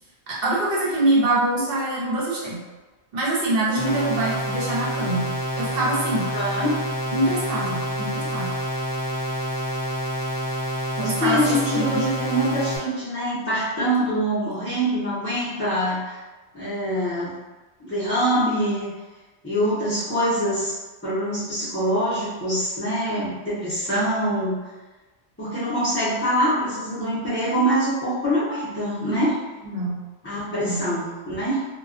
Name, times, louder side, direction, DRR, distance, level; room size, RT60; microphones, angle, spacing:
voice 1, 0.3-2.6 3.1-5.3 5.6-6.3 7.1-8.5 11.0-12.1 29.6-30.0 30.5-30.9, right 2 dB, 60° right, -6 dB, 0.9 m, -24 dB
sound 1, 3.8-12.8, equal, 60° left, 0.9 m, -28 dB
voice 2, 6.3-6.7 11.2-16.2 16.5-17.3 17.8-18.9 19.4-20.7 21.0-24.7 25.4-29.3 30.2-31.6, equal, 15° left, -14 dB, 0.6 m, -24 dB
2.3 x 2.2 x 2.4 m, 1.2 s
omnidirectional pair, 1.1 m